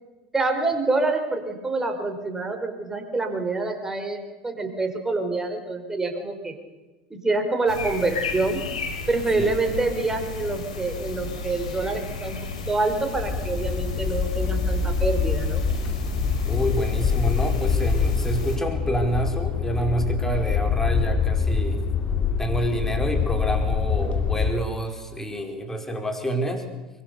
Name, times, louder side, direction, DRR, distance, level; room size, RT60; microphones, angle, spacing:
voice 1, 0.3-6.6 7.1-8.6 9.1-12.4 12.7-15.6, right 3 dB, 15° right, 5 dB, 5.1 m, -26 dB
sound 1, 7.7-18.6, left 3 dB, 85° left, 4.6 m, -34 dB
sound 2, 13.1-24.5, left 5 dB, 35° left, 2.8 m, -25 dB
voice 2, 16.4-21.8 22.4-26.6, right 1 dB, 10° left, 4 dB, 5.1 m, -28 dB
24.5 x 22.5 x 7.0 m, 1.1 s
hypercardioid pair, 80°, 4 cm